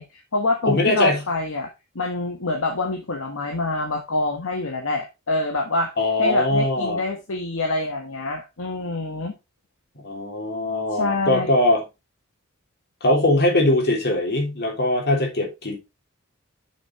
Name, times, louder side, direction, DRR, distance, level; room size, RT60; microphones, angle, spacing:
voice 1, 0.0-1.7 1.9-5.9 6.2-9.4 10.9-11.5, left 2 dB, 65° left, 1.4 m, -26 dB
voice 2, 0.6-1.2 6.0-7.0 10.0-11.8 13.0-15.8, left 1 dB, 50° left, 3.1 m, -21 dB
6.5 x 6.3 x 4.4 m
head